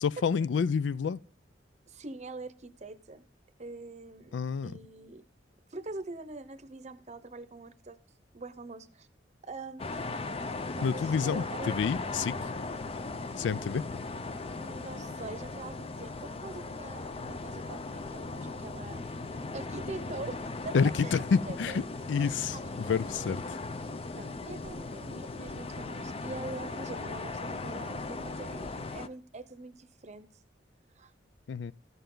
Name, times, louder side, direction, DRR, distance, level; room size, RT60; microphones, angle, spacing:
voice 1, 0.0-1.2 4.3-4.8 10.8-12.5 13.4-14.0 20.7-21.8 22.1-23.4 31.5-31.7, left 6 dB, 90° left, 0.4 m, -29 dB
voice 2, 1.9-3.3 3.6-4.4 4.6-5.2 5.7-8.0 8.3-9.1 9.4-10.0 10.7-11.7 14.6-19.0 19.5-20.7 21.0-23.4 24.1-30.3 31.0-31.1, right 3 dB, 40° right, 0.7 m, -44 dB
sound 1, 9.8-29.1, left 3 dB, 35° left, 0.5 m, -38 dB
14.0 x 6.9 x 3.8 m
head